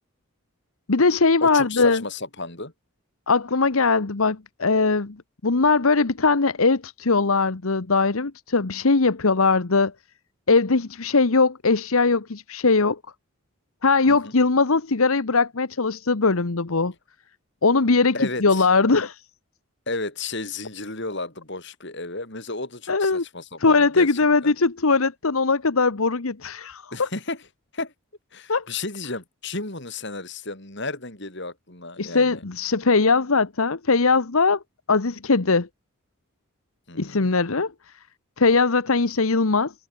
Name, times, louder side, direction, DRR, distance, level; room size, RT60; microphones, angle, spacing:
voice 1, 0.9-2.0 3.3-5.2 5.4-9.9 10.5-13.0 13.8-16.9 17.6-19.2 22.9-23.2 23.6-27.1 28.5-28.6 32.0-34.6 34.9-35.7 37.0-37.7 38.4-39.7, left 4 dB, 75° left, 1.1 m, -20 dB
voice 2, 1.4-2.7 14.1-14.4 18.1-18.7 19.9-24.5 26.9-27.4 27.7-27.9 28.3-32.4 36.9-37.3, left 3 dB, 55° left, 5.2 m, -33 dB
head